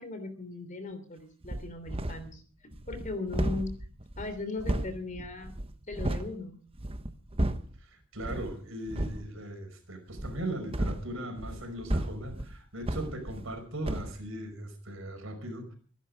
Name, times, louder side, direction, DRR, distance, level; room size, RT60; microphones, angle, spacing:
voice 1, 0.0-2.4 2.9-3.7 4.2-5.5 5.9-6.6, left 3 dB, 35° left, 9 dB, 3.2 m, -38 dB
sound 1, 1.4-2.4 2.7-6.3 6.7-7.8 8.2-8.5 8.9-9.3 10.1-13.6 13.8-14.2, right 1 dB, 25° right, 1.1 m, -34 dB
voice 2, 7.8-15.8, right 1 dB, 60° right, 6 dB, 5.3 m, -39 dB
24.0 x 10.5 x 5.2 m, 0.40 s
head